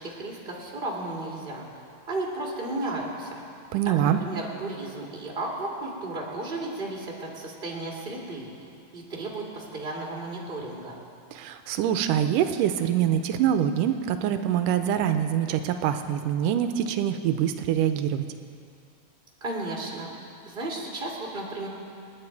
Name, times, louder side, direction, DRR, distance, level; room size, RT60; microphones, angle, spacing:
voice 1, 0.0-1.6 2.1-3.4 4.0-8.5 8.9-11.0 19.4-20.1 20.5-21.7, right 2 dB, 15° right, -2 dB, 2.2 m, -34 dB
voice 2, 3.7-4.2 11.3-18.3, right 10 dB, 85° right, 8 dB, 2.2 m, -25 dB
28.5 x 9.8 x 4.7 m, 2.4 s
omnidirectional pair, 3.9 m